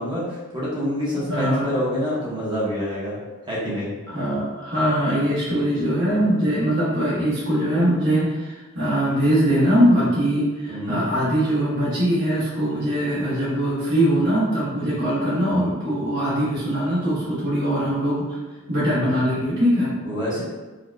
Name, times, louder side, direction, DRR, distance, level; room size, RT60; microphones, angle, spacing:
voice 1, 0.0-3.2 3.5-3.9 10.7-11.0 20.0-20.4, equal, 20° right, -8 dB, 1.0 m, -26 dB
voice 2, 1.3-1.7 4.1-18.4 18.7-19.9, equal, 50° right, -10 dB, 1.2 m, -22 dB
4.9 x 2.9 x 2.2 m, 1.2 s
head